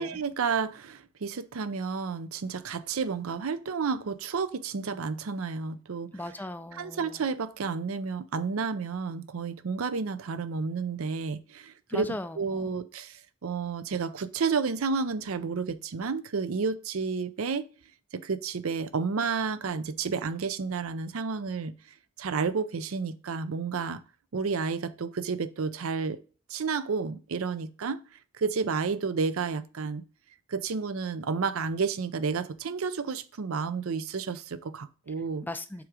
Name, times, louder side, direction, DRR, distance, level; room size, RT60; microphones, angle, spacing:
voice 1, 0.0-6.1 6.7-12.1 12.4-17.6 18.1-21.7 22.2-24.0 24.3-26.2 26.5-28.0 28.4-30.0 30.5-35.4, right 5 dB, 75° right, 0.5 m, -31 dB
voice 2, 6.1-7.3 11.9-12.8 35.4-35.9, left 1 dB, 10° left, 0.4 m, -38 dB
6.0 x 3.7 x 4.8 m
head